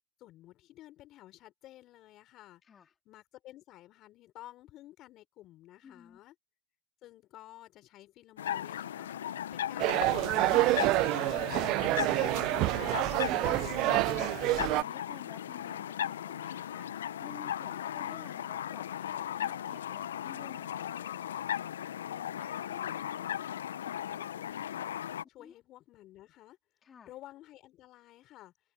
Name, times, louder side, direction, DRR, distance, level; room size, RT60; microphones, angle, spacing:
voice 1, 0.2-2.6 3.0-6.3 7.0-9.1 9.5-13.7 17.7-18.2 22.0-24.9 25.3-26.6 27.0-28.5, left 15 dB, 50° left, 5.1 m, -53 dB
voice 2, 2.6-2.9 5.8-6.2 9.1-9.3 13.6-21.0 23.8-24.0 25.4-25.6 26.8-27.1, left 7 dB, 35° left, 2.6 m, -53 dB
sound 1, 8.4-25.2, left 10 dB, 85° left, 0.6 m, -37 dB
sound 2, 9.8-14.8, right 19 dB, 60° right, 0.5 m, -27 dB
hypercardioid pair, 80°, 0 cm